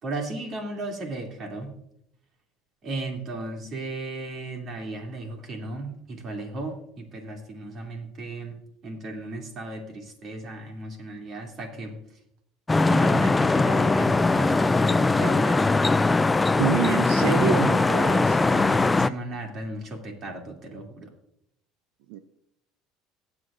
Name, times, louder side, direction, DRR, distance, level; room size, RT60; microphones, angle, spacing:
voice 1, 0.0-1.7 2.8-8.6 8.8-12.0 12.9-15.7 18.5-21.1, right 2 dB, 40° right, 2 dB, 2.6 m, -35 dB
sound 1, 12.7-19.1, left 3 dB, 15° left, 0.3 m, -21 dB
voice 2, 16.6-18.4 22.1-22.2, right 10 dB, 85° right, 9 dB, 0.6 m, -27 dB
22.0 x 7.9 x 2.5 m, 0.74 s
cardioid pair, 130°, 0 cm